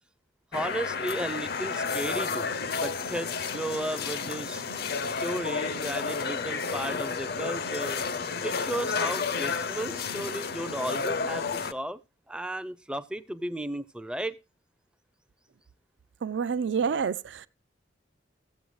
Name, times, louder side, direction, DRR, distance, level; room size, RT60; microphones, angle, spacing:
sound 1, 0.5-11.7, left 5 dB, 55° left, 0.5 m, -31 dB
voice 1, 0.5-2.5 2.8-4.6 5.2-8.1 8.4-12.0 12.3-14.3, right 1 dB, 5° right, 0.4 m, -34 dB
voice 2, 16.2-17.5, right 6 dB, 70° right, 0.4 m, -28 dB
15.0 x 7.8 x 3.1 m
head